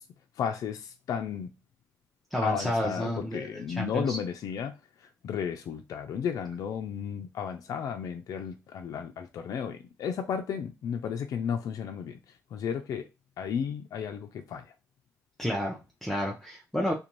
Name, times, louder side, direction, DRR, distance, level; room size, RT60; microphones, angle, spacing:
voice 1, 0.4-1.5 2.4-4.7 5.0-12.2 12.5-13.1 13.4-14.6, left 7 dB, 70° left, 0.4 m, -33 dB
voice 2, 2.3-4.2 15.4-16.9, equal, 5° left, 0.6 m, -31 dB
2.5 x 2.2 x 3.0 m
cardioid pair, 85°, 6 cm